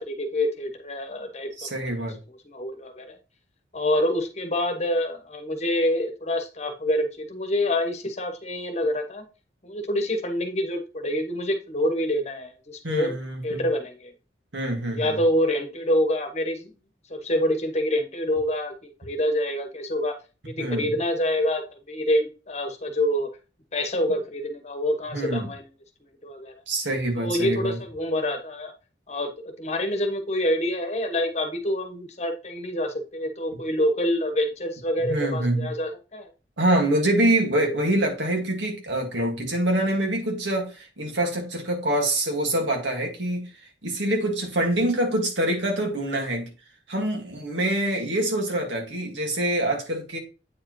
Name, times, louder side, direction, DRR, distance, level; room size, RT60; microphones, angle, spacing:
voice 1, 0.0-1.7 2.3-3.2 3.7-9.2 9.6-13.1 13.4-14.1 14.9-16.7 17.1-20.2 20.4-23.3 23.7-25.6 26.2-26.5 27.2-28.7 29.1-36.3, left 1 dB, 35° left, 1.1 m, -26 dB
voice 2, 1.6-2.2 12.8-13.6 14.5-15.2 20.6-20.9 25.1-25.5 26.7-27.8 35.0-35.7 36.6-43.5 43.8-46.5 46.9-50.2, right 1 dB, 85° right, 1.9 m, -25 dB
8.4 x 4.8 x 3.1 m
head